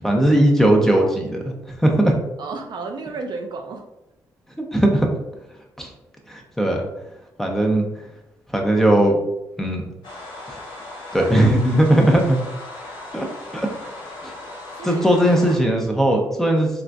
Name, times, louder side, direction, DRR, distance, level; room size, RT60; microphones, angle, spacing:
voice 1, 0.0-2.1 4.6-5.1 5.8-5.9 6.3-6.9 7.4-7.9 8.5-9.2 9.6-9.9 10.5-10.6 11.1-12.4 13.1-13.3 13.5-13.7 14.2-14.3 14.8-16.7, right 1 dB, 5° left, 1 dB, 0.7 m, -18 dB
voice 2, 2.4-3.8 11.1-11.5 14.7-15.1, right 4 dB, 60° right, 3 dB, 0.4 m, -32 dB
sound 1, 10.0-15.6, left 2 dB, 80° left, 1.0 m, -37 dB
3.8 x 2.4 x 2.3 m, 0.92 s
supercardioid pair, 65°, 8 cm